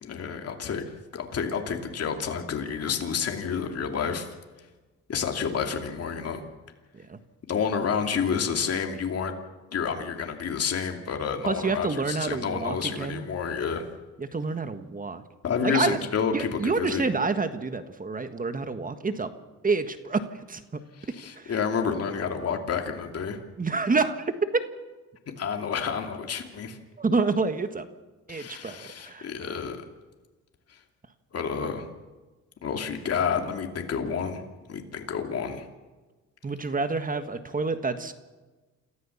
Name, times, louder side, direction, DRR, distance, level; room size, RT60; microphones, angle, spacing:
voice 1, 0.0-0.8 1.1-4.3 5.1-6.4 7.5-9.3 9.7-13.8 15.4-17.1 21.0-23.4 25.4-26.8 28.3-29.8 31.3-31.9 32.6-34.4 34.7-35.7, left 6 dB, 55° left, 4 dB, 2.7 m, -29 dB
voice 2, 11.4-13.2 14.2-15.2 15.6-16.0 16.3-19.3 19.6-20.8 21.4-21.5 23.6-24.2 27.0-27.9 28.3-29.3 36.4-38.1, right 4 dB, 30° right, 9 dB, 1.6 m, -28 dB
28.0 x 14.5 x 7.2 m, 1.2 s
cardioid pair, 90°, 30 cm